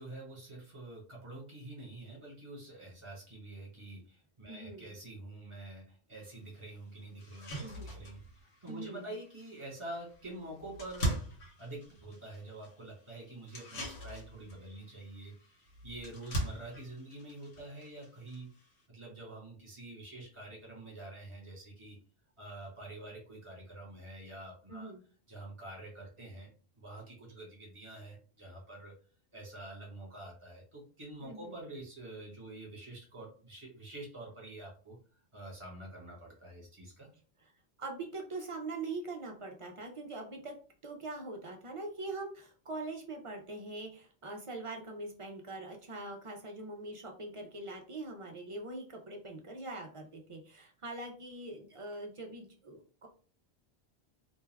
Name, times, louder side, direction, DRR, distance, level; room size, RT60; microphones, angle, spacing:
voice 1, 0.0-11.2 11.6-18.5 18.9-22.0 22.4-24.9 25.3-28.9 29.3-37.1, right 2 dB, 30° right, -3 dB, 1.1 m, -47 dB
voice 2, 4.5-4.9 7.6-7.9 8.7-9.1 24.7-25.0 31.2-31.5 37.8-40.6 40.8-53.1, right 2 dB, 55° right, 2 dB, 0.3 m, -43 dB
sound 1, 6.2-6.3 6.7-6.8 7.2-18.8, right 1 dB, 85° left, 1.2 m, -42 dB
2.5 x 2.2 x 3.2 m, 0.40 s
omnidirectional pair, 1.1 m